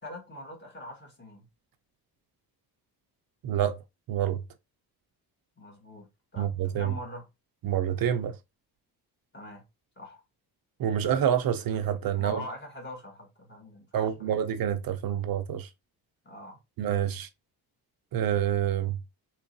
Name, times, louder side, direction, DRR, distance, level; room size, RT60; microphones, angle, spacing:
voice 1, 0.0-1.5 5.6-7.3 9.3-9.6 9.9-10.2 12.2-14.5 16.2-16.6, left 1 dB, 25° left, 1.6 m, -43 dB
voice 2, 3.4-3.8 4.1-4.4 6.4-6.5 6.7-6.9 7.6-8.4 10.8-12.4 13.9-15.7 16.8-17.3 18.1-19.0, right 10 dB, 60° right, 0.6 m, -27 dB
3.8 x 3.1 x 2.6 m
cardioid pair, 125°, 40 cm